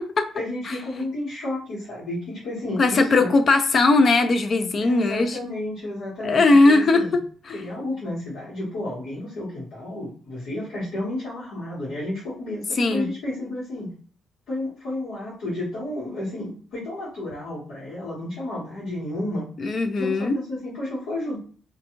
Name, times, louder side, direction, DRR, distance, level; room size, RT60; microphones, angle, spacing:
voice 1, 0.3-3.3 4.8-7.2 7.5-13.9 14.5-19.4 20.0-21.4, left 1 dB, 85° left, -9 dB, 1.3 m, -31 dB
voice 2, 2.8-5.4 6.2-7.2 7.5-7.6 12.8-13.1 19.6-20.4, left 3 dB, 45° left, 8 dB, 0.4 m, -19 dB
2.5 x 2.3 x 2.9 m, 0.42 s
cardioid pair, 90°, 0 cm